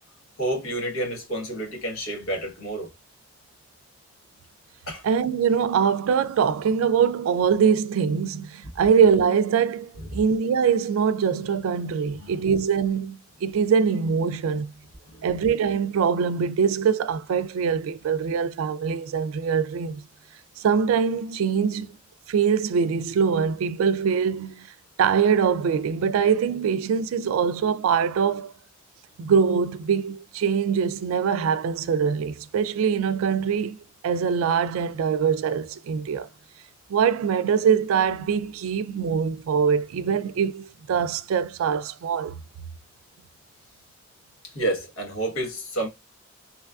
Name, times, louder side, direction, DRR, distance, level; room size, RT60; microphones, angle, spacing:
voice 1, 0.4-2.9 4.9-5.0 12.1-12.4 15.0-15.3 44.4-45.9, right 1 dB, 90° left, 1.2 m, -29 dB
voice 2, 5.0-14.7 15.2-20.0 20.6-21.9 22.3-24.7 25.0-28.5 29.2-33.8 34.0-36.3 36.9-42.4, right 6 dB, 85° right, 0.3 m, -23 dB
3.1 x 2.3 x 2.2 m
head